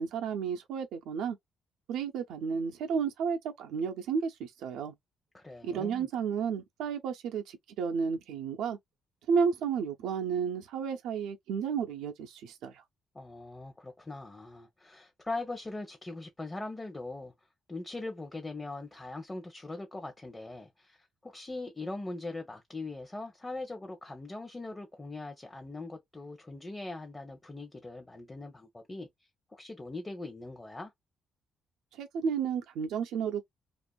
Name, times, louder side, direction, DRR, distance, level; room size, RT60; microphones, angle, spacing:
voice 1, 0.0-1.4 1.9-4.9 5.6-8.8 9.3-12.8 32.0-33.4, right 6 dB, 90° right, 0.5 m, -32 dB
voice 2, 5.3-6.1 13.1-17.3 17.7-21.0 21.2-29.1 29.5-30.9, left 2 dB, 20° left, 0.7 m, -41 dB
2.5 x 2.4 x 2.2 m
cardioid pair, 90°, 0 cm